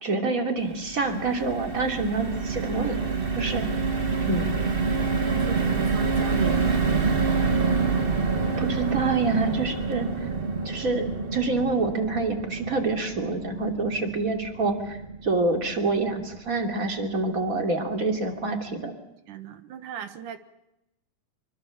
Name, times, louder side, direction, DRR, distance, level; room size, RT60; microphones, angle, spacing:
voice 1, 0.0-3.0 3.3-3.7 4.3-4.5 8.4-10.3 10.6-18.9, right 3 dB, 25° right, 5 dB, 3.0 m, -27 dB
sound 1, 0.6-16.9 17.3-17.4 17.7-17.9, right 4 dB, 55° right, 0.6 m, -27 dB
voice 2, 4.9-7.3 19.3-20.4, right 10 dB, 70° right, 10 dB, 3.0 m, -37 dB
25.5 x 24.0 x 7.2 m, 0.86 s
omnidirectional pair, 3.9 m